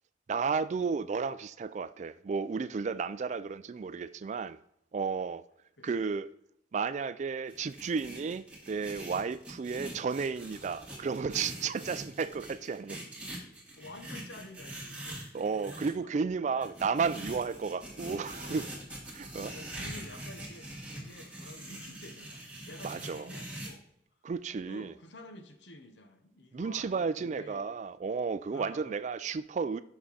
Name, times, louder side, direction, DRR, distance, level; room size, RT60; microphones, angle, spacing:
voice 1, 0.3-4.6 4.9-5.4 5.8-6.3 6.7-13.0 15.3-18.7 19.1-19.5 22.8-23.3 24.2-24.9 26.5-29.8, right 5 dB, 40° right, 0.3 m, -33 dB
sound 1, 7.5-15.9 16.6-23.7, right 1 dB, 5° right, 1.9 m, -43 dB
voice 2, 13.8-15.2 15.7-16.1 16.5-16.7 19.5-23.9 24.6-27.7 28.5-29.0, left 1 dB, 90° left, 1.0 m, -50 dB
6.4 x 5.9 x 4.1 m
head